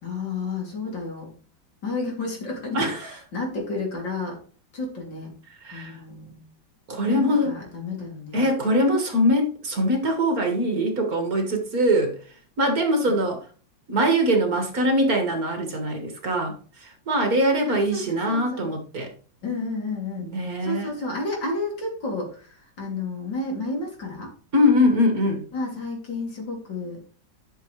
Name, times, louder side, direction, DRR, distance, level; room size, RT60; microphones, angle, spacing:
voice 1, 0.0-1.3 1.8-4.4 4.7-5.3 5.7-6.5 7.0-8.4 17.7-18.7 19.4-20.3 20.6-24.3 25.5-27.0, left 3 dB, 65° left, 3.6 m, -31 dB
voice 2, 2.7-3.1 5.6-6.0 6.9-7.5 8.3-12.2 12.6-13.4 13.9-16.6 16.8-19.1 20.2-20.9 24.5-25.4, equal, 45° right, 2.0 m, -22 dB
11.5 x 6.5 x 3.2 m
omnidirectional pair, 2.2 m